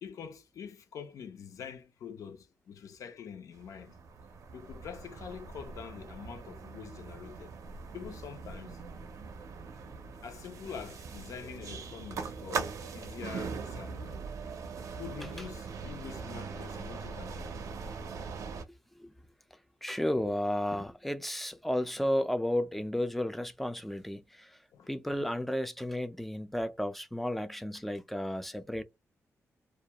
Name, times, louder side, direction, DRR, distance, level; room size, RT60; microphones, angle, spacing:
voice 1, 0.0-4.0 4.5-7.5 7.9-8.8 10.2-14.3 14.9-17.6 24.7-25.3, left 7 dB, 80° left, 0.5 m, -45 dB
sound 1, 3.5-18.6, right 5 dB, 70° right, 0.5 m, -41 dB
voice 2, 19.8-24.6 24.9-28.8, left 1 dB, 5° left, 0.3 m, -33 dB
2.3 x 2.2 x 2.8 m
wide cardioid pair, 160°, 6 cm